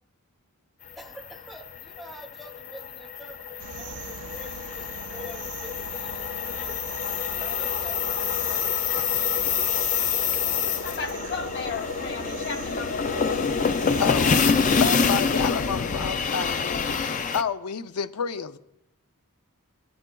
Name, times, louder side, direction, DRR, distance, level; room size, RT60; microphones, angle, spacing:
sound 1, 0.9-17.4, left 6 dB, 35° left, 0.4 m, -26 dB
voice 1, 1.0-6.8 7.3-8.7 14.0-14.9, right 1 dB, ahead, 0.7 m, -46 dB
sound 2, 3.6-14.8, right 7 dB, 80° right, 0.4 m, -42 dB
voice 2, 9.0-9.5 14.0-14.3 14.8-18.6, left 6 dB, 90° left, 0.5 m, -30 dB
voice 3, 10.6-13.5 14.1-14.2, left 5 dB, 50° left, 0.9 m, -35 dB
17.5 x 8.5 x 2.3 m
head